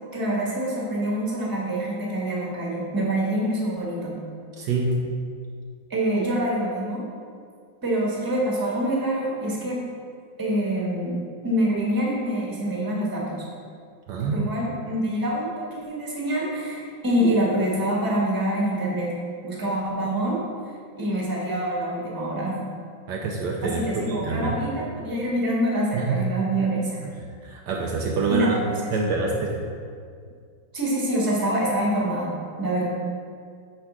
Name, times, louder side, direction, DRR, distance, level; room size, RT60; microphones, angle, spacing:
voice 1, 0.1-4.2 5.9-7.0 7.8-9.8 10.4-11.2 11.4-13.4 14.2-19.1 19.4-20.4 21.0-22.6 23.6-27.0 28.3-29.1 30.7-32.9, right 1 dB, 15° right, -4 dB, 1.1 m, -26 dB
voice 2, 4.6-4.9 14.1-14.5 23.1-23.8 24.1-24.5 25.9-26.2 27.4-28.6 28.9-29.6, right 4 dB, 70° right, -1 dB, 1.2 m, -25 dB
7.3 x 3.4 x 6.0 m, 2.2 s
omnidirectional pair, 2.0 m